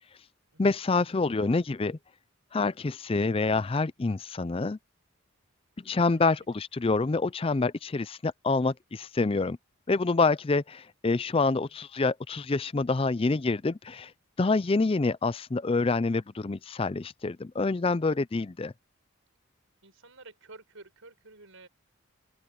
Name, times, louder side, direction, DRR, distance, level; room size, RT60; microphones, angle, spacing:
voice 1, 0.6-2.0 2.5-4.8 5.8-9.6 9.9-14.1 14.4-18.7, left 3 dB, 25° left, 0.4 m, -27 dB
voice 2, 19.8-21.7, right 3 dB, 70° right, 5.5 m, -51 dB
open air
head